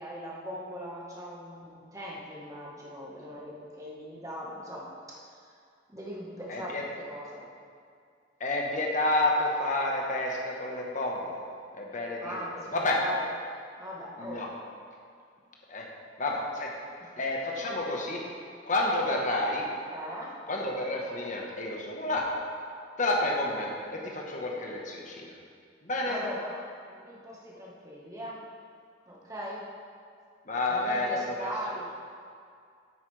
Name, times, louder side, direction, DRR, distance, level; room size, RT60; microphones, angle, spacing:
voice 1, 0.0-5.5 5.9-7.5 12.2-13.3 13.8-14.4 17.0-17.1 17.4-17.5 18.8-19.2 19.9-20.4 26.1-28.4 29.1-29.6 30.7-31.9, equal, 15° right, -4 dB, 1.5 m, -40 dB
voice 2, 6.5-6.8 8.4-11.3 11.7-12.4 12.7-13.1 14.2-14.5 15.7-15.9 16.2-16.7 17.2-18.2 18.7-19.7 20.5-22.3 23.0-25.3 25.8-26.2 30.5-31.5, left 2 dB, 40° left, -1 dB, 1.3 m, -30 dB
9.8 x 8.3 x 3.4 m, 2.3 s
head